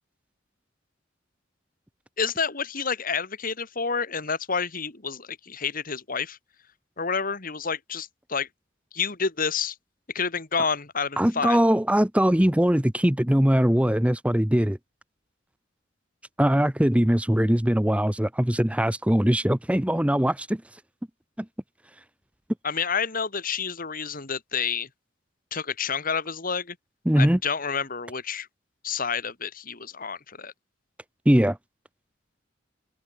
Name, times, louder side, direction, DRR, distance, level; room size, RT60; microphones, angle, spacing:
voice 1, 2.2-6.4 7.0-8.5 8.9-9.8 10.1-11.6 22.6-24.9 25.5-26.8 27.2-28.5 28.8-30.5, left 5 dB, 45° left, 2.4 m, -29 dB
voice 2, 11.2-14.8 16.4-20.6 27.1-27.4 31.3-31.6, equal, 5° right, 0.9 m, -21 dB
head